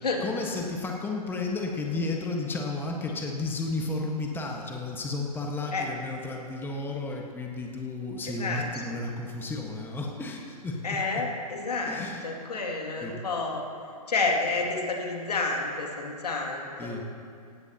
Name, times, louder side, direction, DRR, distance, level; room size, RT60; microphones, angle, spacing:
voice 1, 0.0-10.8 11.9-12.2 13.0-13.1 16.8-17.0, left 3 dB, 10° left, 0 dB, 1.5 m, -33 dB
voice 2, 8.3-9.0 10.8-13.6 14.1-17.1, left 3 dB, 80° left, 1 dB, 2.5 m, -30 dB
17.5 x 16.5 x 3.0 m, 2.4 s
hypercardioid pair, 120°, 20 cm